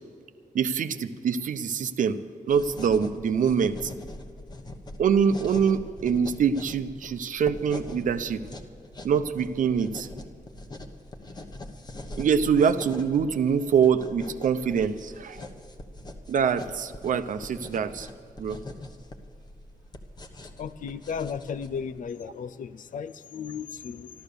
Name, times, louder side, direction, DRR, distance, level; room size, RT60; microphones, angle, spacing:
voice 1, 0.5-2.2 2.5-3.9 5.0-8.4 9.0-10.1 12.2-15.4 16.3-18.1 18.4-18.6, right 7 dB, 75° right, 10 dB, 0.8 m, -24 dB
sound 1, 2.5-22.0, left 1 dB, 30° left, 1.1 m, -43 dB
voice 2, 20.6-24.1, left 6 dB, 75° left, 15 dB, 0.6 m, -35 dB
13.5 x 13.0 x 6.8 m, 2.3 s
wide cardioid pair, 170°, 14 cm